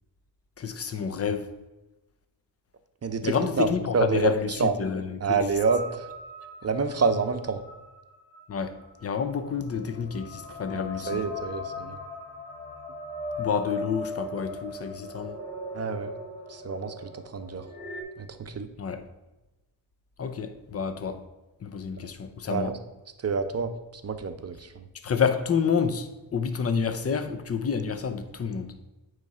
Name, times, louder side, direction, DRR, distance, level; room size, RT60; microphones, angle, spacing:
voice 1, 0.6-1.5 3.2-5.5 8.5-8.8 9.0-11.2 13.4-15.4 18.8-19.0 20.2-21.2 21.6-22.7 25.0-28.7, left 6 dB, 35° left, 0.7 m, -29 dB
voice 2, 3.0-3.7 3.9-4.8 5.2-6.0 6.6-7.6 10.7-12.0 15.7-16.1 16.5-16.9 17.3-17.6 18.2-18.7 22.5-22.8 23.2-23.7 24.0-24.6, right 5 dB, 35° right, 0.8 m, -27 dB
sound 1, 5.5-18.0, left 1 dB, 10° left, 2.2 m, -39 dB
8.8 x 3.3 x 5.5 m
cardioid pair, 80°, 43 cm